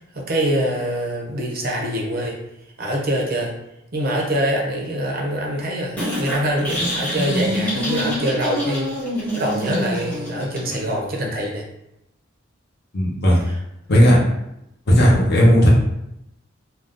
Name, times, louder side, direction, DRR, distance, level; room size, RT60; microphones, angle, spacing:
voice 1, 0.0-2.4 2.8-3.5 3.9-8.9 9.3-11.7 13.3-13.6, equal, 50° right, 0 dB, 0.6 m, -24 dB
sound 1, 6.0-11.0, equal, 5° left, 0.8 m, -26 dB
voice 2, 12.9-13.4 13.9-14.2 14.9-15.7, equal, 55° left, -4 dB, 0.8 m, -14 dB
2.5 x 2.2 x 3.5 m, 0.83 s
head